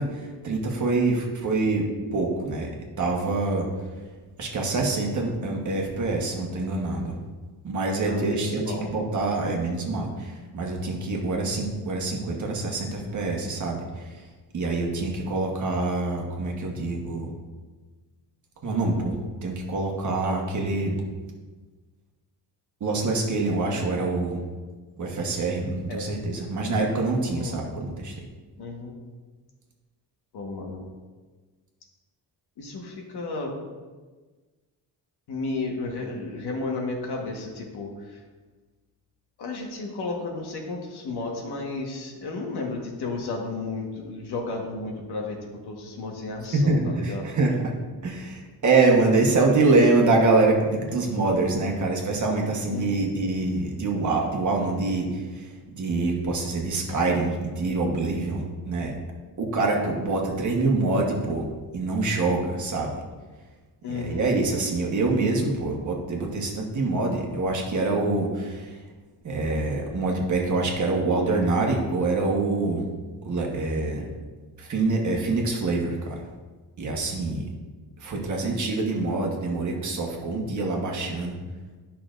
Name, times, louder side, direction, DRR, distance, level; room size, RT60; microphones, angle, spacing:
voice 1, 0.0-1.8 2.1-2.7 3.0-3.7 4.4-7.2 7.6-14.2 14.5-17.3 18.6-21.0 22.8-24.4 25.0-28.1 46.5-47.8 48.0-58.9 59.4-62.9 63.9-68.8 69.2-72.8 73.2-74.1 74.6-76.2 76.8-77.5 78.0-81.4, right 3 dB, 45° right, 0 dB, 1.3 m, -25 dB
voice 2, 8.0-8.9 25.9-26.1 27.3-27.6 28.6-29.0 30.3-30.8 32.6-33.5 35.3-38.2 39.4-45.4 45.6-47.3 52.7-53.0 63.8-64.2, left 3 dB, 65° left, 1 dB, 1.4 m, -33 dB
11.0 x 5.9 x 2.5 m, 1.3 s
cardioid pair, 155°, 41 cm